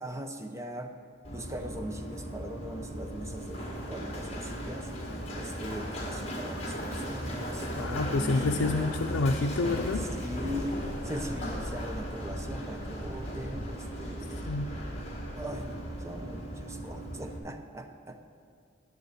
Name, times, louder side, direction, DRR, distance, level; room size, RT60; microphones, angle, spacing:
voice 1, 0.0-0.9 1.3-4.9 5.3-9.0 9.9-10.8 11.0-14.5 15.3-18.2, equal, 15° right, 5 dB, 0.7 m, -40 dB
Run, 1.2-17.4, equal, 30° left, 1.7 m, -36 dB
voice 2, 7.7-10.1 14.5-14.7, left 3 dB, 85° left, 2 dB, 0.5 m, -28 dB
10.5 x 6.9 x 7.8 m, 2.4 s
head